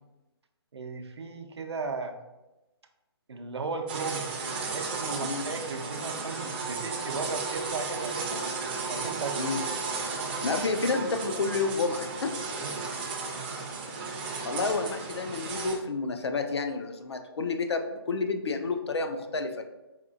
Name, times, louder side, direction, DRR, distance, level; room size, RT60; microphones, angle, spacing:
voice 1, 0.7-2.2 3.3-4.3 4.7-8.4 8.9-9.5 12.6-12.9, right 4 dB, 85° right, 5 dB, 0.5 m, -36 dB
sound 1, 3.9-15.8, right 4 dB, 25° right, 0.4 m, -34 dB
voice 2, 10.4-12.3 14.4-19.6, left 4 dB, 85° left, 6 dB, 0.5 m, -30 dB
4.2 x 2.4 x 2.5 m, 1.0 s
hypercardioid pair, 155°, 13 cm